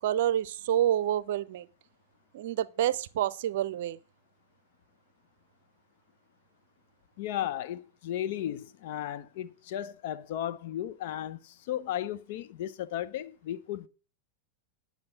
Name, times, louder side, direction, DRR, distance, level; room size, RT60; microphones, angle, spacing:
voice 1, 0.0-1.7 2.3-4.0, right 11 dB, 55° right, 0.6 m, -28 dB
voice 2, 7.2-13.9, left 11 dB, 50° left, 0.7 m, -35 dB
10.5 x 6.6 x 6.3 m
figure-of-eight pair, 90°, 0 cm